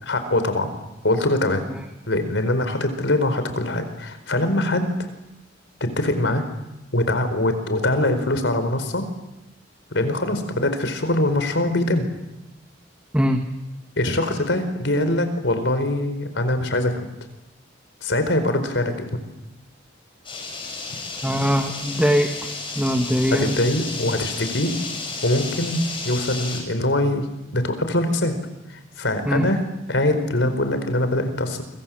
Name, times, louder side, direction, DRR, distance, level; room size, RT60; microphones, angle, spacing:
voice 1, 0.0-0.7 1.0-1.7 2.1-4.9 5.8-6.4 6.9-9.1 9.9-12.1 14.0-17.1 18.0-19.1 23.3-24.7 25.2-27.3 27.5-28.4 28.7-29.6 29.9-31.6, left 1 dB, 75° left, 9 dB, 4.5 m, -23 dB
sound 1, 20.2-26.6, left 3 dB, 25° left, 6.8 m, -32 dB
voice 2, 21.2-22.3 22.7-23.6 29.2-29.5, equal, 5° right, 4 dB, 1.6 m, -21 dB
29.5 x 24.5 x 7.7 m, 0.94 s
head